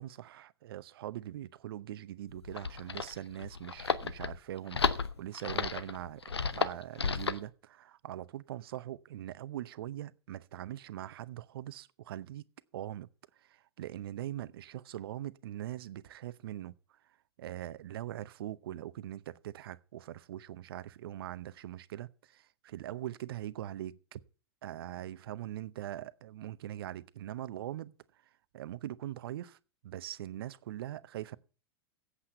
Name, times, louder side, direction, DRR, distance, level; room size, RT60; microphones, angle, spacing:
voice 1, 0.0-12.5 12.7-13.1 13.4-16.7 17.4-24.2 24.6-27.9 28.5-29.6 29.8-31.4, right 13 dB, 65° right, 0.7 m, -42 dB
sound 1, 2.3-7.5, left 5 dB, 85° left, 0.8 m, -33 dB
8.3 x 8.0 x 9.0 m
figure-of-eight pair, 95°, 13 cm